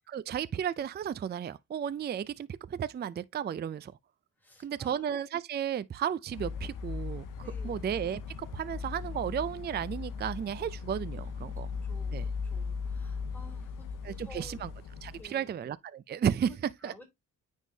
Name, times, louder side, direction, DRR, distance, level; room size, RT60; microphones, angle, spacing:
voice 1, 0.1-3.9 4.6-11.7 12.1-12.3 14.0-14.7 15.0-16.5 16.8-16.9, right 8 dB, 35° right, 0.4 m, -34 dB
voice 2, 4.4-5.0 7.4-7.8 11.8-14.7 15.2-15.6 16.4-17.0, left 2 dB, 5° left, 3.0 m, -53 dB
sound 1, 6.3-15.2, left 5 dB, 85° left, 0.8 m, -38 dB
9.3 x 3.7 x 2.7 m
cardioid pair, 80°, 32 cm